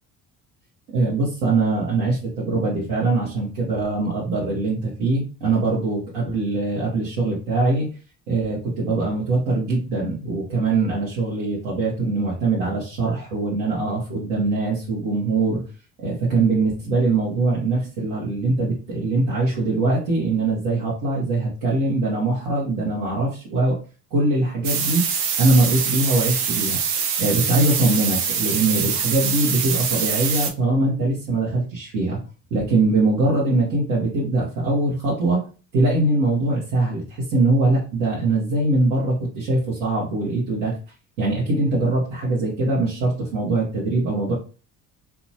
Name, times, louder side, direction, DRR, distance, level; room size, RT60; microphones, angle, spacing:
voice 1, 0.9-7.9 8.3-15.6 16.0-23.8 24.1-25.0 25.4-26.8 27.2-32.2 32.5-35.5 35.7-40.8 41.2-44.3, right 2 dB, 70° right, -5 dB, 1.1 m, -22 dB
sound 1, 24.6-30.5, right 7 dB, 90° right, 0.6 m, -24 dB
2.8 x 2.2 x 2.7 m, 0.35 s
hypercardioid pair, 55°, 43 cm